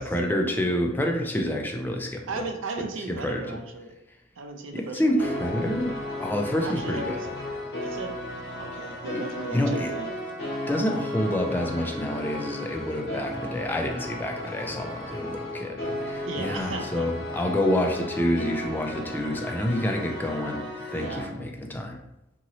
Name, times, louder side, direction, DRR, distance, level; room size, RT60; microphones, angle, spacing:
voice 1, 0.0-2.4 3.2-3.5 4.7-7.2 9.1-9.2 9.5-9.9 10.7-22.0, left 1 dB, 10° left, 2 dB, 0.3 m, -28 dB
voice 2, 2.3-3.9 4.4-5.4 6.6-7.2 7.8-8.2 8.6-10.1 16.3-17.1 20.9-21.2, right 3 dB, 75° right, 5 dB, 0.4 m, -36 dB
sound 1, 5.2-21.3, left 1 dB, 55° left, 1.0 m, -34 dB
2.9 x 2.6 x 2.9 m, 0.88 s
head